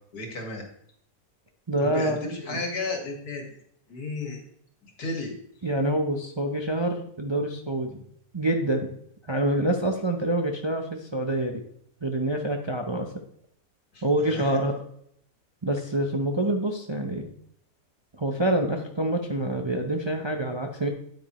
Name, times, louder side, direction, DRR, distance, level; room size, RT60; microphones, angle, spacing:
voice 1, 0.1-0.6 1.8-3.4 3.9-4.4 4.8-5.4 13.9-14.6, left 2 dB, 85° left, 2 dB, 2.4 m, -33 dB
voice 2, 1.7-2.6 5.6-8.0 8.3-8.9 9.3-11.6 12.0-13.1 14.0-14.7 15.6-17.3 18.1-20.9, right 1 dB, 30° right, 3 dB, 0.5 m, -26 dB
9.3 x 8.8 x 3.1 m, 0.68 s
omnidirectional pair, 1.6 m